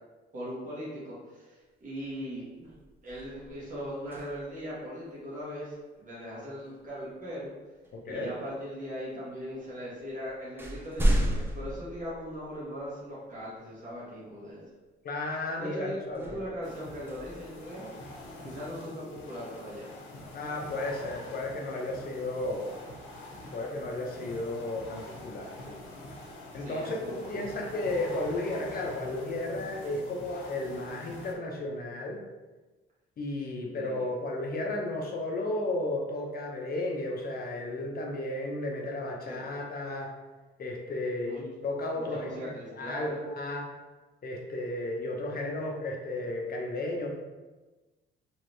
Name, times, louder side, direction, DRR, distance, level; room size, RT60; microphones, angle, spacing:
voice 1, 0.3-2.7 3.0-7.5 8.1-14.6 15.6-17.9 18.4-19.9 26.5-27.4 33.7-34.1 39.2-39.4 41.2-41.4 41.9-43.2, equal, 40° right, -8 dB, 1.3 m, -39 dB
sound 1, 2.0-2.3 2.6-4.7 6.9-7.0 7.8-8.6 9.5-9.6 10.0-12.8 13.4-13.5 16.1-18.2, right 1 dB, 10° right, 0.5 m, -33 dB
voice 2, 7.9-8.3 15.0-16.4 20.3-22.7 23.5-25.8 26.5-32.2 33.2-40.1 40.6-43.7 44.2-47.1, left 2 dB, 50° left, 0 dB, 0.6 m, -34 dB
sound 2, 16.6-31.3, left 1 dB, 85° left, 0.7 m, -45 dB
3.1 x 3.0 x 2.7 m, 1.2 s
cardioid pair, 90°, 20 cm